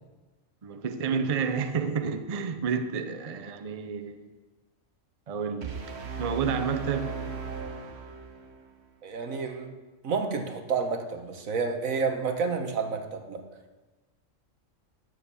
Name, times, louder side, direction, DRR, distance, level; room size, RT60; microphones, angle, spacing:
voice 1, 0.6-4.3 5.3-5.8 6.2-7.1, right 6 dB, 40° right, 0.6 m, -30 dB
sound 1, 5.6-8.6, right 5 dB, 55° right, 1.3 m, -37 dB
voice 2, 9.0-9.7 10.0-13.4, right 5 dB, 80° right, 1.6 m, -30 dB
11.5 x 7.2 x 7.0 m
omnidirectional pair, 1.4 m